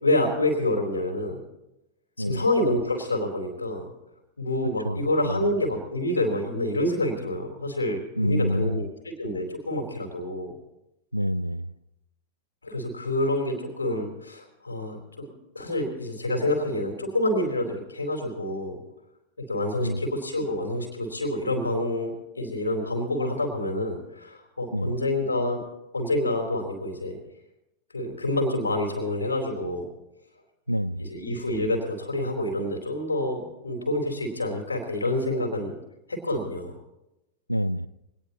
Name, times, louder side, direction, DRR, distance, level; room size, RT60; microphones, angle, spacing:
voice 1, 0.0-1.4 2.2-3.8 4.4-10.5 12.6-15.3 15.6-18.8 19.5-25.6 25.9-27.2 27.9-29.9 31.0-35.7 36.1-36.7, left 1 dB, 80° left, 3 dB, 3.6 m, -27 dB
voice 2, 4.8-5.4 8.2-8.9 11.1-11.7 19.8-20.0 24.7-25.0 30.7-31.1 37.5-37.9, equal, 90° right, 17 dB, 0.4 m, -27 dB
23.0 x 18.5 x 3.0 m, 0.91 s
figure-of-eight pair, 90°, 0 cm